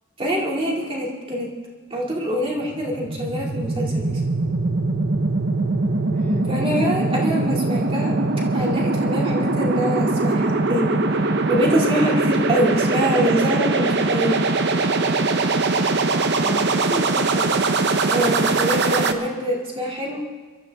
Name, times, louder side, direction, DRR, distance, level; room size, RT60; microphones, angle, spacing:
voice 1, 0.2-1.5 1.9-4.1 6.5-8.1 8.5-14.4 18.1-20.2, equal, 25° right, -2 dB, 2.4 m, -24 dB
sound 1, 2.6-19.1, right 3 dB, 50° right, 0.8 m, -21 dB
voice 2, 6.1-6.5 16.4-18.1, left 1 dB, 10° left, 4 dB, 0.4 m, -34 dB
23.0 x 12.5 x 3.5 m, 1.3 s
head